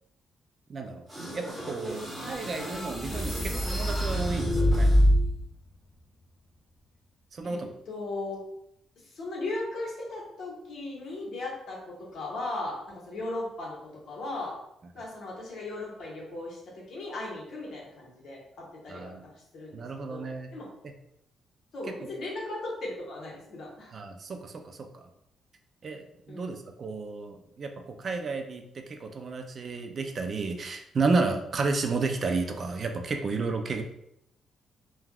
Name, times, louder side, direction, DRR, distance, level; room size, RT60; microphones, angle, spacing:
voice 1, 0.7-1.1 1.3-4.9 7.3-7.7 18.9-19.2 19.7-20.5 23.9-25.0 25.8-33.8, right 3 dB, 40° right, 5 dB, 0.4 m, -32 dB
sound 1, 1.1-5.4, equal, 15° right, 1.0 m, -26 dB
sound 2, 2.9-7.0, left 1 dB, 40° left, 0.4 m, -42 dB
voice 2, 7.4-8.4 9.0-14.6 14.9-20.7 21.7-23.9 26.3-26.5, left 2 dB, 60° left, -3 dB, 1.1 m, -37 dB
3.3 x 2.2 x 2.3 m, 0.79 s
cardioid pair, 115°, 0 cm